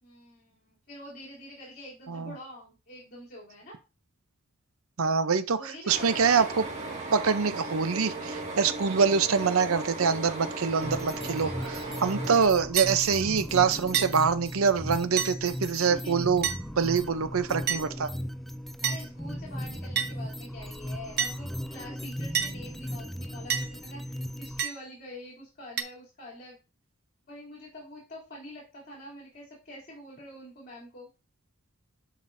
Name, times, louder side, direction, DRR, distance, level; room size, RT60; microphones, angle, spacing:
voice 1, 0.0-3.8 5.6-6.6 10.6-12.1 15.7-16.3 18.8-26.6 27.3-31.1, left 1 dB, 45° left, 3.1 m, -46 dB
voice 2, 5.0-5.6 5.9-6.6 7.1-11.5 12.0-16.5 16.8-18.1, right 5 dB, 75° right, 0.6 m, -25 dB
sound 1, 5.9-12.5, right 2 dB, 35° right, 1.9 m, -37 dB
sound 2, 10.8-24.6, equal, ahead, 0.3 m, -37 dB
sound 3, 12.8-13.0 13.9-14.1 15.2-15.4 16.4-16.6 17.7-17.9 18.8-19.0 20.0-20.1 21.2-21.4 22.3-22.5 23.5-23.7 24.6-24.8 25.8-25.9, right 8 dB, 50° right, 0.9 m, -28 dB
10.5 x 5.1 x 2.6 m
head